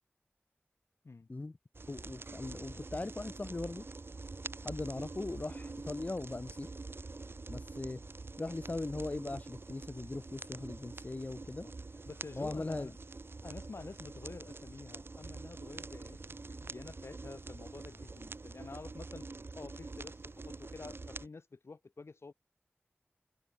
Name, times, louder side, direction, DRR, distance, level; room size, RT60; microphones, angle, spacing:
sound 1, 1.7-21.3, right 3 dB, 60° right, 1.1 m, -46 dB
voice 1, 1.9-3.9 4.6-6.7 7.5-8.0 8.4-11.7 12.3-12.9, left 2 dB, 35° left, 0.4 m, -39 dB
voice 2, 12.1-12.9 13.4-22.3, left 3 dB, 85° left, 3.5 m, -49 dB
wide cardioid pair, 70°, 4 cm